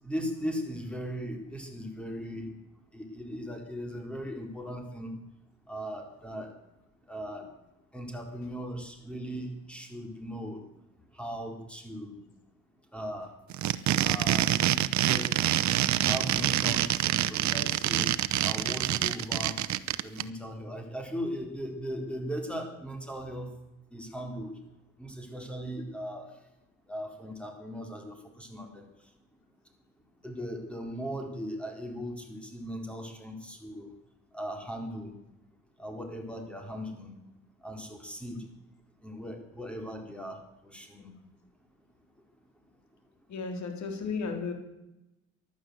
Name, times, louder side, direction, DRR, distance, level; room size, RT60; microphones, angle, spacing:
voice 1, 0.0-2.5 2.9-5.1 5.7-6.5 7.1-7.5 7.9-10.6 11.2-12.2 12.9-13.3 14.0-14.5 15.0-15.3 16.0-18.1 18.4-19.6 20.0-23.5 23.9-24.6 25.0-26.3 26.9-28.8 30.2-33.9 34.3-35.1 35.8-37.2 37.6-38.4 39.0-41.1, equal, 5° left, 3 dB, 3.9 m, -38 dB
sound 1, 13.5-20.2, right 12 dB, 65° right, 0.8 m, -26 dB
voice 2, 43.3-44.5, left 4 dB, 70° left, 5 dB, 3.8 m, -34 dB
15.5 x 12.0 x 7.9 m, 0.91 s
cardioid pair, 90°, 30 cm